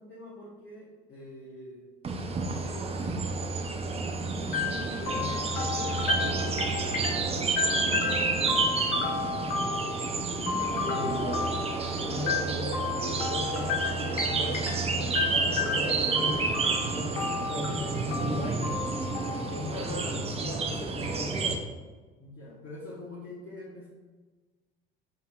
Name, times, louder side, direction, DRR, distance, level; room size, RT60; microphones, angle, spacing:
voice 1, 0.0-1.9 2.3-9.3 19.7-20.4 22.2-23.9, left 1 dB, 35° left, -5 dB, 1.1 m, -45 dB
sound 1, 2.0-21.6, right 4 dB, 20° right, 0.5 m, -30 dB
sound 2, 4.5-20.3, left 6 dB, 65° left, 0.7 m, -33 dB
voice 2, 10.8-11.6 12.0-18.8 19.5-21.6, left 1 dB, 20° left, -3 dB, 1.4 m, -37 dB
6.6 x 2.7 x 2.3 m, 1.3 s
figure-of-eight pair, 65°, 30 cm